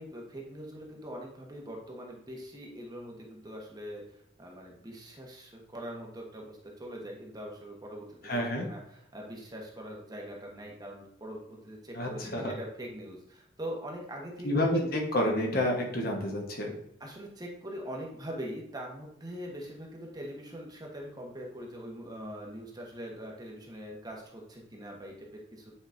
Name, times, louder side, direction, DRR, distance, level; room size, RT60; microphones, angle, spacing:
voice 1, 0.0-4.0 4.4-15.0 17.0-25.7, equal, 20° right, -1 dB, 1.1 m, -42 dB
voice 2, 8.2-8.6 11.9-12.5 14.4-16.7, left 1 dB, 50° left, 1 dB, 1.2 m, -29 dB
8.5 x 5.0 x 2.6 m, 0.72 s
head